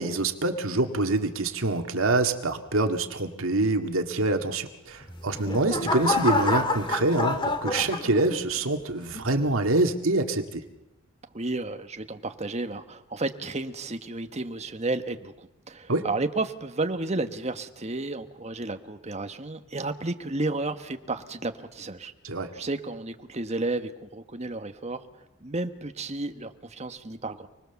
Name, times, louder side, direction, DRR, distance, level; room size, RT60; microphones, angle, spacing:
voice 1, 0.0-10.6 15.9-16.0 22.2-22.5, right 2 dB, 75° right, 5 dB, 2.1 m, -25 dB
sound 1, 5.0-8.6 9.1-9.5, left 2 dB, 25° left, 1.9 m, -28 dB
voice 2, 11.3-22.1 22.5-25.0 25.4-27.5, right 2 dB, 30° right, 7 dB, 1.4 m, -32 dB
29.0 x 20.0 x 7.1 m, 0.98 s
head